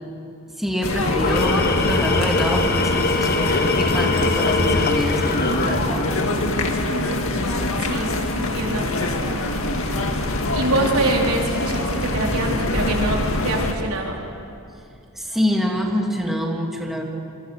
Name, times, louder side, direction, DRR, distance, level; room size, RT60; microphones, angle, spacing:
voice 1, 0.6-6.2 15.2-17.0, equal, ahead, 0 dB, 2.7 m, -25 dB
sound 1, 0.8-13.7, left 2 dB, 65° left, 2.2 m, -24 dB
Tools, 1.0-6.4, left 3 dB, 45° left, 1.5 m, -23 dB
voice 2, 6.9-7.2 7.8-8.9 10.5-14.2, right 2 dB, 90° right, 0 dB, 4.1 m, -25 dB
26.5 x 24.0 x 6.6 m, 2.6 s
head